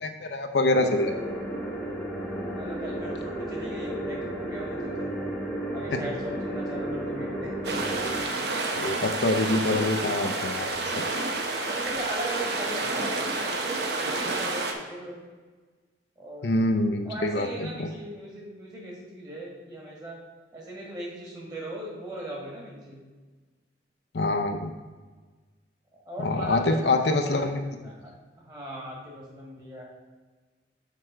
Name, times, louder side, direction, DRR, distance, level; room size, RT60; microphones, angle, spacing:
voice 1, 0.0-1.1 8.7-11.0 16.4-17.9 24.1-24.7 26.2-27.6, left 2 dB, 70° left, 6 dB, 0.6 m, -25 dB
sound 1, 0.7-8.2, right 1 dB, ahead, 1.0 m, -33 dB
voice 2, 2.5-5.2 5.7-7.9 11.7-15.2 16.2-16.5 17.1-20.2 20.5-23.1 25.9-26.9 27.2-27.5 27.8-28.1 28.4-29.8, right 1 dB, 20° right, -3 dB, 1.7 m, -39 dB
sound 2, 7.6-14.7, right 3 dB, 70° right, 0.8 m, -29 dB
6.6 x 4.9 x 4.5 m, 1.3 s
head